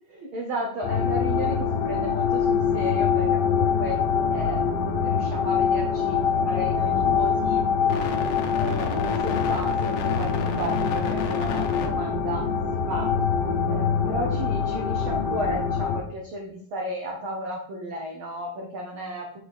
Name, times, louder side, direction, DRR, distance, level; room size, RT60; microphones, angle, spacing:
voice 1, 0.1-4.0 4.3-7.6 8.5-12.5 12.9-13.1 13.6-19.4, equal, 85° right, 0 dB, 1.1 m, -34 dB
sound 1, 0.8-16.0, left 6 dB, 85° left, 2.4 m, -24 dB
6.3 x 6.0 x 3.5 m, 0.65 s
omnidirectional pair, 3.6 m